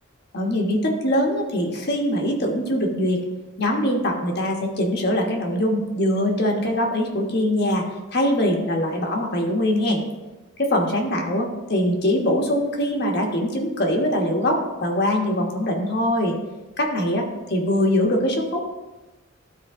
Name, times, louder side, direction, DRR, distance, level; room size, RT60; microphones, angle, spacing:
voice 1, 0.3-3.2 3.6-7.8 8.1-10.0 10.6-16.3 16.8-18.8, left 1 dB, 55° left, 0 dB, 1.3 m, -22 dB
13.0 x 4.4 x 3.6 m, 1.1 s
head